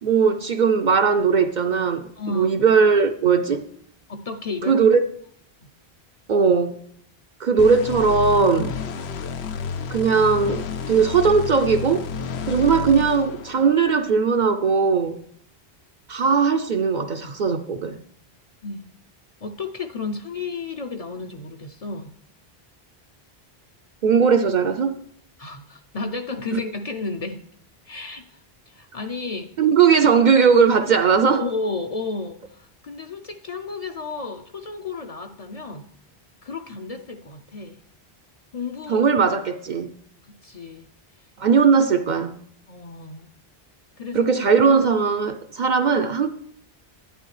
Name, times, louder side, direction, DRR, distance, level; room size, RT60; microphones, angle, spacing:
voice 1, 0.0-3.7 4.6-5.1 6.3-6.8 7.4-8.7 9.9-12.1 12.5-15.2 16.1-18.0 24.0-25.0 26.5-26.6 29.6-31.4 38.9-39.9 41.4-42.3 44.1-46.3, right 5 dB, 55° right, 0.6 m, -19 dB
voice 2, 2.2-2.5 4.1-4.8 5.6-5.7 18.6-18.9 19.4-22.1 25.4-27.4 27.9-28.4 28.7-29.5 31.2-35.9 36.4-37.8 38.5-39.1 40.3-40.9 42.7-43.3 44.0-44.3, left 3 dB, 45° left, 0.6 m, -32 dB
sound 1, 7.6-14.0, left 5 dB, 85° left, 0.9 m, -31 dB
11.0 x 9.5 x 3.2 m
omnidirectional pair, 1.1 m